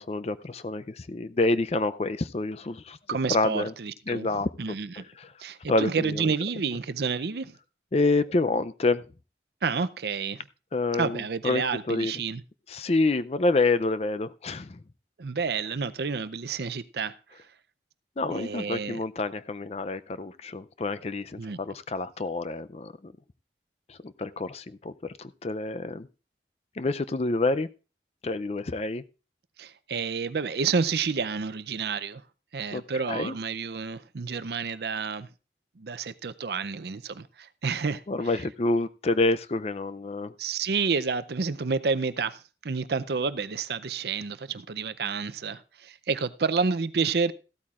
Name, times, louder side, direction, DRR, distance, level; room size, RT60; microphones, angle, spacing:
voice 1, 0.0-3.0 3.3-3.7 4.1-4.5 5.2-5.3 5.7-6.2 7.9-9.0 10.7-12.1 12.7-14.8 18.2-23.1 23.9-24.9 25.2-26.1 26.8-27.7 28.2-29.0 32.7-33.4 38.1-40.3, left 2 dB, 35° left, 0.4 m, -27 dB
voice 2, 3.1-4.9 5.4-7.5 9.6-10.4 11.0-12.4 15.2-17.1 18.3-19.0 21.4-21.6 29.6-32.2 32.5-35.3 35.8-38.0 40.4-47.3, right 5 dB, 60° right, 0.5 m, -29 dB
15.0 x 12.5 x 2.4 m
head